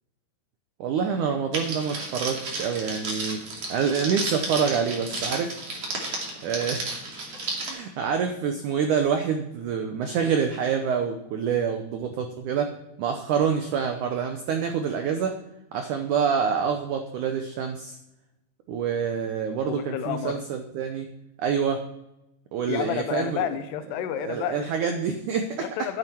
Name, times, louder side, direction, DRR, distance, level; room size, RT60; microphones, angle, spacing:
voice 1, 0.8-3.4 3.7-5.5 6.4-6.9 7.6-12.7 13.0-15.3 15.7-18.0 18.7-21.1 21.4-21.9 22.5-23.5 24.1-25.6, right 7 dB, 90° right, 6 dB, 1.7 m, -26 dB
Crackle, 1.5-7.7, right 2 dB, 40° right, 3.2 m, -32 dB
voice 2, 19.7-20.4 22.7-24.9 25.6-26.0, left 11 dB, 85° left, 10 dB, 2.9 m, -30 dB
13.0 x 9.7 x 4.5 m, 0.88 s
omnidirectional pair, 4.8 m